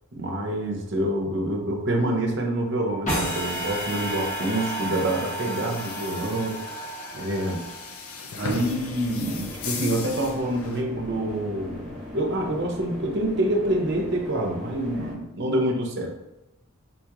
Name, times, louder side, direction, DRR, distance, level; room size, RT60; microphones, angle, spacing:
voice 1, 0.1-6.6 7.1-7.7 8.3-16.1, right 1 dB, 55° right, 1 dB, 0.6 m, -27 dB
sound 1, 3.1-10.8, left 5 dB, 90° left, 0.4 m, -38 dB
sound 2, 3.1-8.3, right 1 dB, 35° left, 1.0 m, -32 dB
sound 3, 8.5-15.1, left 1 dB, 5° left, 1.1 m, -39 dB
3.9 x 2.9 x 2.4 m, 0.90 s
head